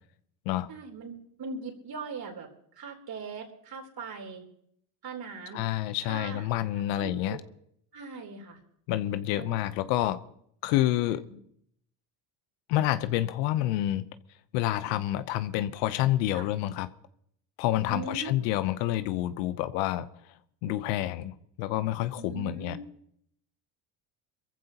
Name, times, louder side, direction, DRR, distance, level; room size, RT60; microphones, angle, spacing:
voice 1, 0.7-2.5 2.7-4.4 5.0-5.6 6.1-6.5 6.8-7.4 7.9-8.6 9.4-9.5 11.1-11.3 16.3-16.5 17.9-18.3 18.9-19.0 22.2-22.9, right 4 dB, 45° right, 3.9 m, -40 dB
voice 2, 5.5-7.4 8.9-10.2 10.6-11.2 12.7-14.1 14.5-16.9 17.6-20.1 20.6-22.8, left 14 dB, 85° left, 1.0 m, -28 dB
23.5 x 15.0 x 2.9 m
supercardioid pair, 90°, 49 cm